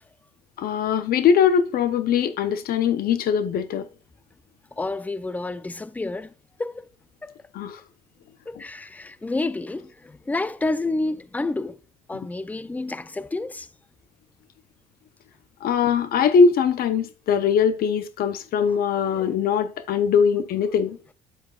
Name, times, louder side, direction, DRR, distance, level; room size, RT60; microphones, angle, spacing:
voice 1, 0.6-3.8 7.5-7.8 15.6-21.0, left 6 dB, 60° left, 0.7 m, -21 dB
voice 2, 4.8-6.3 6.6-6.8 7.2-7.4 8.5-11.8 12.1-13.7 18.7-18.8 19.1-19.4, left 2 dB, 10° left, 0.4 m, -29 dB
8.9 x 7.6 x 2.4 m
cardioid pair, 110°, 17 cm